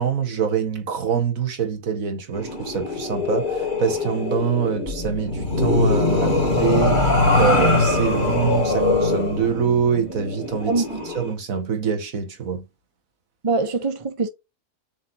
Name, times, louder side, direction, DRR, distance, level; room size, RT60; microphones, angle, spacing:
voice 1, 0.0-10.8 11.2-12.7, right 7 dB, 70° right, 1.9 m, -25 dB
sound 1, 2.3-11.3, left 3 dB, 35° left, 3.0 m, -22 dB
voice 2, 10.7-11.0 13.4-14.3, right 3 dB, 25° right, 0.9 m, -23 dB
7.7 x 4.9 x 2.8 m
omnidirectional pair, 1.5 m